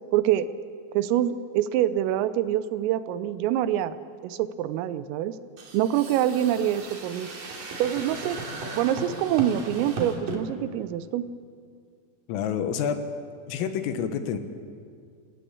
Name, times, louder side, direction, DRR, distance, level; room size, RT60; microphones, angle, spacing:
voice 1, 0.1-0.5 0.9-4.0 4.2-5.4 5.7-7.3 7.8-8.4 8.7-11.3, right 11 dB, 80° right, 13 dB, 3.3 m, -25 dB
sound 1, 5.6-10.4, right 3 dB, 45° right, 4.2 m, -36 dB
voice 2, 12.3-13.0 13.5-14.4, left 8 dB, 80° left, 8 dB, 3.9 m, -28 dB
28.5 x 18.0 x 8.5 m, 2.2 s
omnidirectional pair, 6.0 m